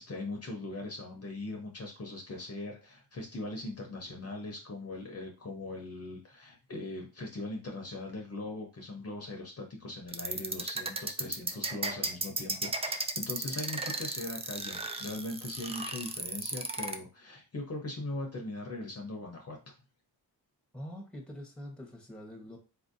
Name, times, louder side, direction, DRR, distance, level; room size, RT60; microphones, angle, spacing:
voice 1, 0.0-19.6, left 2 dB, 35° left, 1 dB, 0.8 m, -40 dB
sound 1, 10.1-17.0, right 3 dB, 15° right, 0.3 m, -34 dB
voice 2, 20.7-22.6, equal, 5° left, 1 dB, 1.1 m, -44 dB
4.1 x 2.7 x 2.6 m, 0.32 s
cardioid pair, 100°, 40 cm